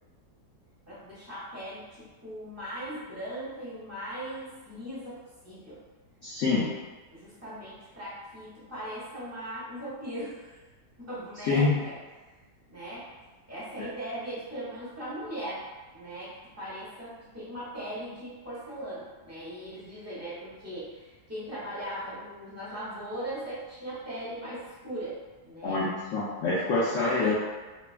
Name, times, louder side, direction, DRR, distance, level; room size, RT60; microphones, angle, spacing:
voice 1, 0.9-5.2 5.4-5.8 6.4-6.7 7.1-10.6 11.0-12.3 12.7-13.1 13.5-25.2 25.4-25.8 27.2-27.3, right 1 dB, 15° right, -10 dB, 0.6 m, -39 dB
voice 2, 6.2-6.7 11.5-11.8 25.6-25.8 26.1-27.3, left 3 dB, 70° left, -7 dB, 0.7 m, -25 dB
3.1 x 2.2 x 2.4 m, 1.2 s
omnidirectional pair, 1.8 m